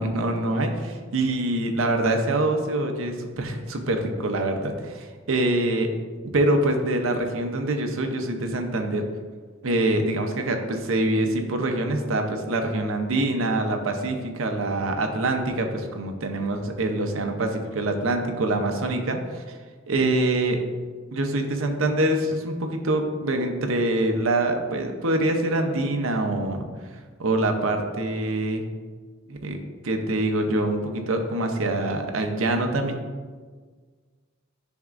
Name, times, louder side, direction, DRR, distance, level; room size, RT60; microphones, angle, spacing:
voice 1, 0.0-5.9 6.3-9.0 9.6-19.6 19.9-20.6 21.1-26.7 27.2-28.6 29.3-32.9, right 2 dB, 70° right, 4 dB, 0.7 m, -25 dB
10.5 x 3.6 x 2.5 m, 1.5 s
head